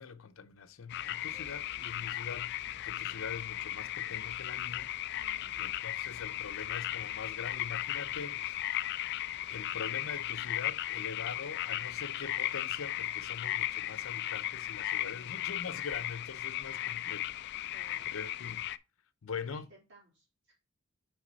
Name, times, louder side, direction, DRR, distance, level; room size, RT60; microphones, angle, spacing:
voice 1, 0.0-4.9 5.6-8.8 9.5-17.7 18.1-18.6 19.2-19.7, left 5 dB, 90° left, 0.7 m, -43 dB
sound 1, 0.9-18.8, left 13 dB, 55° left, 0.3 m, -36 dB
voice 2, 1.3-1.9 5.1-5.8 14.9-15.7 17.7-18.1 19.5-20.6, equal, 65° right, 3.6 m, -61 dB
6.1 x 5.1 x 4.0 m
head